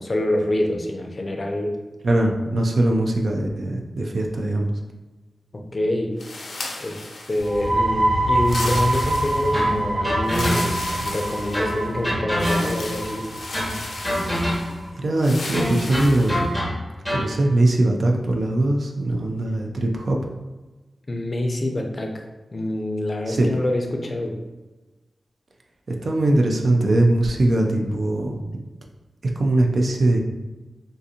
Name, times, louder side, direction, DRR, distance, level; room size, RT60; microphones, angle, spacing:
voice 1, 0.0-1.7 5.7-6.2 6.8-13.3 21.1-22.2 22.5-24.4, left 1 dB, 35° left, 2 dB, 0.5 m, -26 dB
voice 2, 2.0-4.7 14.9-16.5 17.1-20.2 23.3-23.5 25.9-28.4 29.4-30.2, right 1 dB, 60° right, 2 dB, 0.4 m, -21 dB
sound 1, 6.2-7.7 8.4-9.7 10.2-11.9 12.4-14.8 15.2-16.4, left 2 dB, 80° left, 0.6 m, -34 dB
sound 2, 7.4-14.8, right 1 dB, 35° right, 1.5 m, -25 dB
sound 3, 9.5-10.9 11.5-13.0 13.5-14.9 15.5-17.4, equal, ahead, 0.7 m, -26 dB
3.7 x 2.5 x 2.7 m, 1.2 s
wide cardioid pair, 95°, 0 cm